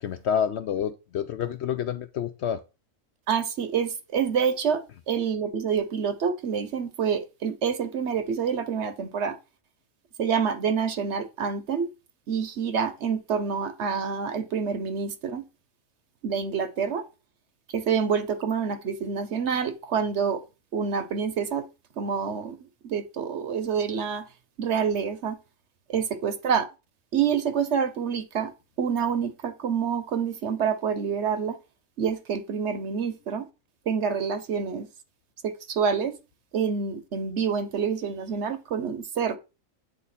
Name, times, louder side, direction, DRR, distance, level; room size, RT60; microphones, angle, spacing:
voice 1, 0.0-2.6, left 8 dB, 65° left, 0.7 m, -28 dB
voice 2, 3.3-9.4 10.2-11.9 12.3-15.4 16.2-17.1 17.7-20.4 20.7-21.6 22.0-24.2 24.6-25.4 25.9-26.7 27.1-28.5 28.8-31.6 32.0-33.5 33.9-34.9 35.4-36.1 36.5-39.4, right 6 dB, 60° right, 1.0 m, -27 dB
8.9 x 3.5 x 4.2 m
omnidirectional pair, 1.5 m